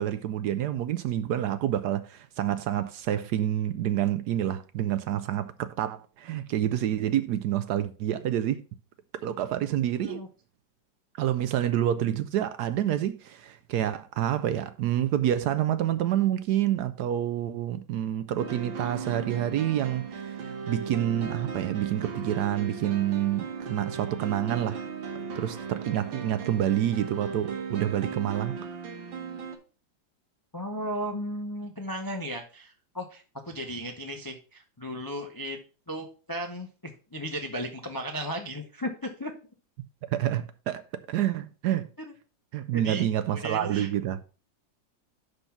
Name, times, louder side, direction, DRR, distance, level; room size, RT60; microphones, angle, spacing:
voice 1, 0.0-8.6 9.2-10.2 11.2-20.4 20.7-24.8 25.3-28.6 40.1-40.8 41.1-41.9 42.5-44.3, right 11 dB, 70° right, 1.0 m, -28 dB
sound 1, 18.4-29.6, right 5 dB, 90° right, 1.9 m, -37 dB
voice 2, 30.5-35.6 35.9-39.3 42.7-43.9, equal, 35° left, 0.3 m, -35 dB
5.8 x 5.4 x 5.8 m
omnidirectional pair, 2.0 m